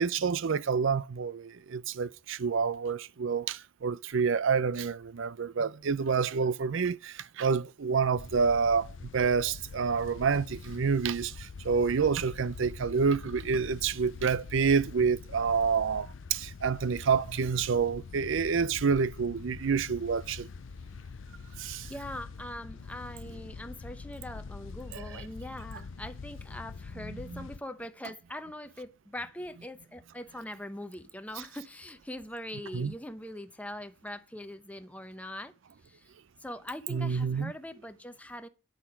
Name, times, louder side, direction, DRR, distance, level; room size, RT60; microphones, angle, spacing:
voice 1, 0.0-20.5 21.6-21.9 24.9-25.2 27.0-27.5 32.7-32.9 36.9-37.5, right 5 dB, 65° right, 0.5 m, -28 dB
sound 1, 8.2-27.6, left 4 dB, 65° left, 0.4 m, -44 dB
voice 2, 21.6-35.5 35.8-36.1 36.4-38.5, left 1 dB, 5° left, 0.8 m, -42 dB
9.7 x 8.3 x 6.0 m
head